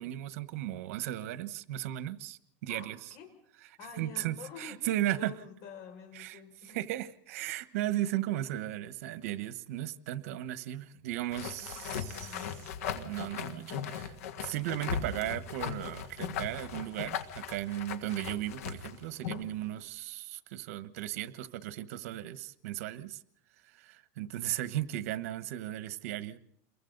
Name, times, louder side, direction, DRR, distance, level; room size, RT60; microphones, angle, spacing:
voice 1, 0.0-3.0 4.0-5.3 6.1-6.4 6.7-12.5 12.9-23.2 23.7-26.4, right 14 dB, 80° right, 13 dB, 1.2 m, -36 dB
voice 2, 2.7-3.3 3.8-6.8 11.6-12.7, left 6 dB, 60° left, 4 dB, 6.0 m, -49 dB
sound 1, 11.3-19.5, left 7 dB, 90° left, 1.7 m, -38 dB
29.0 x 22.5 x 4.0 m, 0.71 s
supercardioid pair, 130°, 8 cm